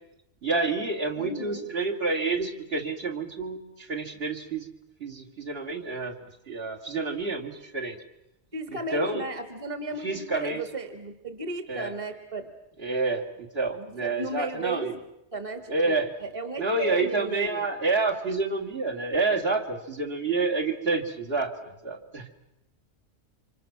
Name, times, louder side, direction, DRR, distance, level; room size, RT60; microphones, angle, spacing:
voice 1, 0.4-4.7 5.0-6.1 6.5-8.0 8.7-9.2 10.0-10.6 11.7-11.9 12.8-15.0 15.7-16.1 16.6-22.3, right 3 dB, 55° right, -1 dB, 2.7 m, -28 dB
voice 2, 1.2-1.7 8.5-12.5 13.8-15.0 15.3-17.6, right 2 dB, 30° right, 7 dB, 1.6 m, -35 dB
28.5 x 26.0 x 6.1 m, 0.86 s
omnidirectional pair, 1.2 m